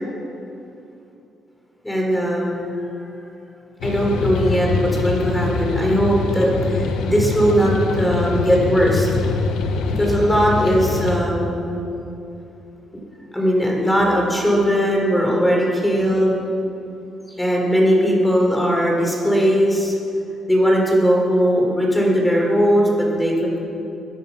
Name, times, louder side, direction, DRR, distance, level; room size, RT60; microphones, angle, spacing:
voice 1, 1.8-2.7 3.8-9.1 10.0-11.8 13.3-16.4 17.4-19.9 20.5-23.6, equal, 10° left, -2 dB, 4.6 m, -19 dB
sound 1, 3.8-11.2, left 4 dB, 90° left, 1.3 m, -23 dB
21.5 x 11.0 x 6.0 m, 2.8 s
cardioid pair, 90°, 0 cm